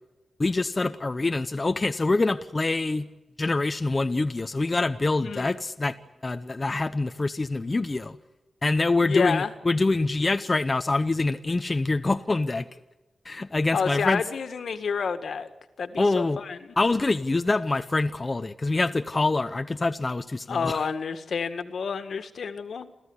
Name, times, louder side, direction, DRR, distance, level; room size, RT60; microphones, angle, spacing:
voice 1, 0.4-3.1 3.4-6.0 6.2-8.2 8.6-12.7 13.2-14.2 16.0-16.4 16.8-20.8, left 3 dB, 25° left, 8 dB, 0.8 m, -25 dB
voice 2, 5.2-5.6 9.0-9.5 13.7-15.5 15.8-16.6 20.5-22.9, left 5 dB, 70° left, 10 dB, 1.8 m, -29 dB
28.5 x 14.5 x 9.7 m, 1.1 s
wide cardioid pair, 135°, 0 cm